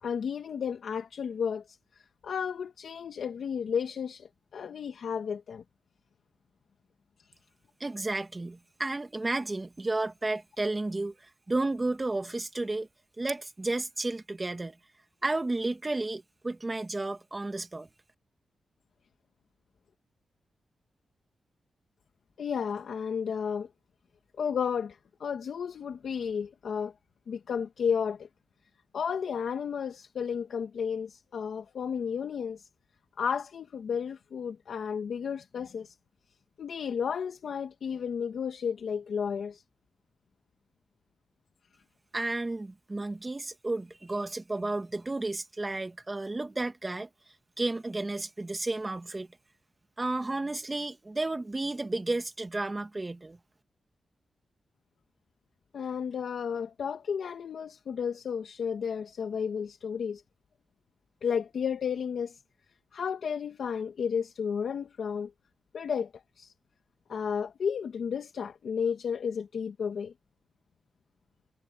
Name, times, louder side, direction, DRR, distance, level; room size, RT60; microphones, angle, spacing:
voice 1, 0.0-5.6 22.4-23.7 24.4-26.9 27.3-28.3 28.9-32.7 33.2-35.9 36.6-39.6 55.7-60.2 61.2-62.4 62.9-65.3 65.7-66.5 67.1-70.1, left 7 dB, 75° left, 1.5 m, -33 dB
voice 2, 7.8-12.9 13.2-14.8 15.2-17.9 42.1-47.1 47.6-49.3 50.0-53.4, right 2 dB, 25° right, 2.1 m, -32 dB
cardioid pair, 95°, 0 cm